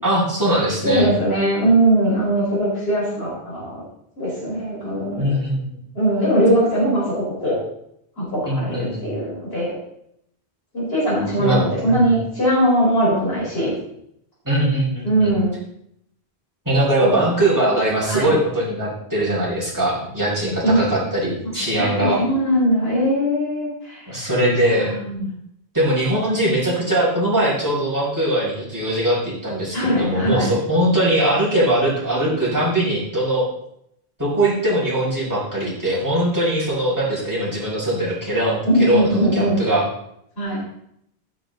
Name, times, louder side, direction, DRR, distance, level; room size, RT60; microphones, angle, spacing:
voice 1, 0.0-1.1 5.2-5.6 8.5-9.1 11.4-12.0 14.4-15.3 16.7-22.2 24.1-24.9 25.7-33.5 34.2-39.9, right 1 dB, 15° right, -7 dB, 5.7 m, -21 dB
voice 2, 0.8-3.8 4.2-5.2 6.0-7.6 8.2-9.7 10.7-13.7 15.0-15.5 17.0-17.1 18.1-18.3 20.6-20.8 21.4-24.2 24.8-25.3 29.7-30.5 38.7-39.6 40.4-40.6, right 1 dB, 70° left, -6 dB, 5.2 m, -20 dB
15.5 x 8.7 x 4.0 m, 0.75 s
omnidirectional pair, 1.1 m